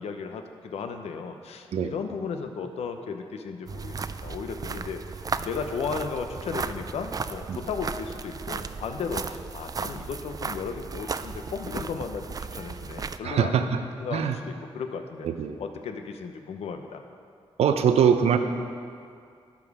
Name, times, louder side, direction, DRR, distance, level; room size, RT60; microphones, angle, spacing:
voice 1, 0.0-5.0 5.4-12.3 12.5-13.5 14.0-15.3 15.6-17.0, left 5 dB, 85° left, 6 dB, 0.7 m, -35 dB
sound 1, 3.7-13.2, right 5 dB, 35° right, 0.4 m, -35 dB
voice 2, 13.2-13.8 14.1-14.4 15.2-15.6 17.6-18.4, right 7 dB, 85° right, 8 dB, 0.6 m, -22 dB
12.0 x 5.2 x 4.8 m, 2.3 s
cardioid pair, 60°, 10 cm